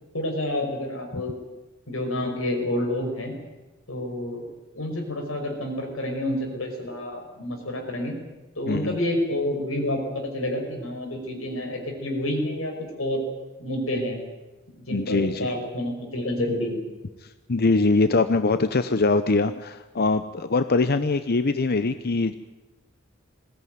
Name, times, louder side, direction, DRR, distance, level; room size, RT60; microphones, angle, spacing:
voice 1, 0.1-1.4 1.9-3.3 3.9-4.4 4.7-8.1 8.6-10.0 10.3-13.2 13.6-14.2 14.9-16.8, left 1 dB, 90° left, 3 dB, 5.6 m, -28 dB
voice 2, 14.9-15.5 17.5-22.3, left 3 dB, 50° left, 11 dB, 0.8 m, -22 dB
20.5 x 17.5 x 9.5 m, 1.1 s
head